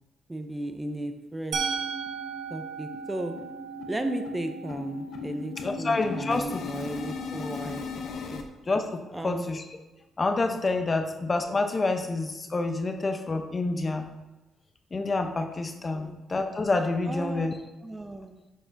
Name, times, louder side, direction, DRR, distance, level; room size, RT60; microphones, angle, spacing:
voice 1, 0.3-1.8 2.5-3.3 3.9-7.8 8.3-8.4 9.1-9.5 10.9-11.1 15.9-16.2 17.1-17.5 17.8-18.4, right 1 dB, 15° right, 7 dB, 0.5 m, -35 dB
sound 1, 1.2-1.3 1.6-1.7 2.0-2.2 2.5-8.4, left 5 dB, 65° left, 0.7 m, -38 dB
Musical instrument, 1.5-7.4, right 5 dB, 80° right, 1.1 m, -37 dB
voice 2, 5.6-6.6 7.4-7.5 8.7-9.6 10.2-14.1 14.9-17.5, left 3 dB, 30° left, 6 dB, 0.7 m, -28 dB
10.0 x 4.7 x 2.6 m, 1.0 s
cardioid pair, 90°, 0 cm